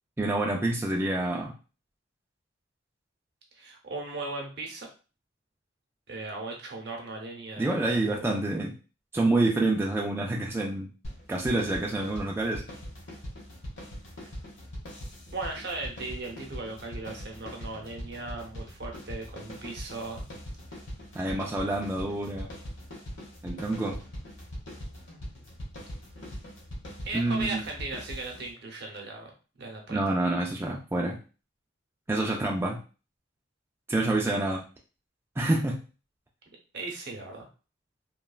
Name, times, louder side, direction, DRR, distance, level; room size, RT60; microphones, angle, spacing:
voice 1, 0.2-1.5 7.6-8.7 9.1-10.9 11.3-12.6 21.1-22.5 23.4-24.0 27.1-27.6 29.9-31.2 32.1-32.8 33.9-34.6 35.4-35.8, right 2 dB, 10° right, -1 dB, 0.3 m, -27 dB
voice 2, 3.5-4.9 6.1-8.4 15.3-20.2 27.0-30.0 36.7-37.5, right 3 dB, 60° right, 1 dB, 0.7 m, -37 dB
sound 1, 11.0-28.5, equal, 90° left, 1.0 m, -42 dB
3.1 x 2.3 x 2.3 m, 0.34 s
head